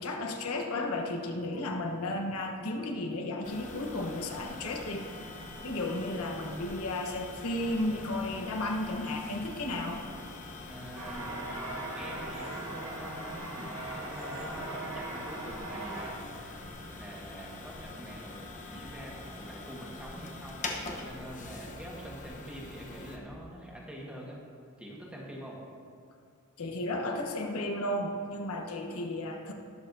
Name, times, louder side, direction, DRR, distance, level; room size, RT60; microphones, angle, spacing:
voice 1, 0.0-5.0 5.6-10.0 26.6-29.5, left 1 dB, 75° left, 2 dB, 1.0 m, -33 dB
sound 1, 3.4-23.2, left 2 dB, 35° left, 1.0 m, -44 dB
voice 2, 10.7-16.7 17.0-20.7 21.0-24.4 24.8-25.6 28.6-28.7, equal, 5° right, -3 dB, 1.5 m, -45 dB
sound 2, 10.9-16.1, right 2 dB, 65° right, 1.9 m, -39 dB
19.5 x 6.6 x 2.7 m, 2.2 s
head